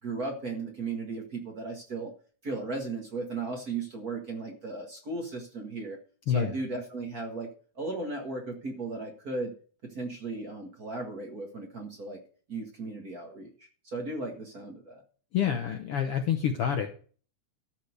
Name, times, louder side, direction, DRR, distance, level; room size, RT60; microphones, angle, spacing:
voice 1, 0.0-2.1 2.4-6.0 6.3-7.5 7.7-9.5 9.8-12.2 12.5-13.5 13.8-15.0, right 3 dB, 35° right, 1 dB, 1.7 m, -36 dB
voice 2, 6.3-6.6 15.3-16.9, left 8 dB, 65° left, 5 dB, 1.5 m, -27 dB
13.0 x 4.4 x 8.1 m, 0.41 s
omnidirectional pair, 3.4 m